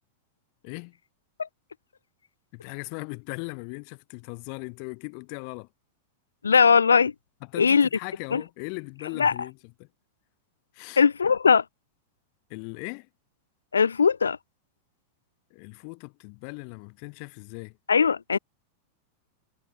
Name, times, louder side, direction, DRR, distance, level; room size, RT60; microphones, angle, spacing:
voice 1, 0.6-1.0 2.5-5.7 7.4-9.9 10.7-11.0 12.5-13.1 15.5-17.8, left 40 dB or more, 45° left, 0.8 m, -39 dB
voice 2, 6.4-7.1 7.6-7.9 8.3-8.4 9.2-9.3 11.0-11.6 13.7-14.4 17.9-18.4, left 6 dB, 75° left, 0.4 m, -19 dB
figure-of-eight pair, 90°, 0 cm